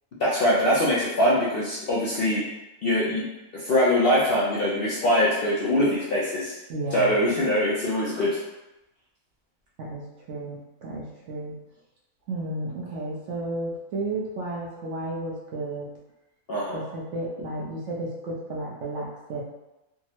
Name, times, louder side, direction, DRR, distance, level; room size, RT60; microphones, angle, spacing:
voice 1, 0.2-2.4 2.8-3.2 3.5-6.5 6.9-8.4 16.5-16.8, left 1 dB, 60° left, -7 dB, 0.6 m, -23 dB
voice 2, 6.7-7.1 9.8-10.0 10.3-11.5 12.3-15.9 16.7-19.4, right 2 dB, 65° right, -3 dB, 0.8 m, -33 dB
3.5 x 2.0 x 2.8 m, 0.98 s
omnidirectional pair, 1.5 m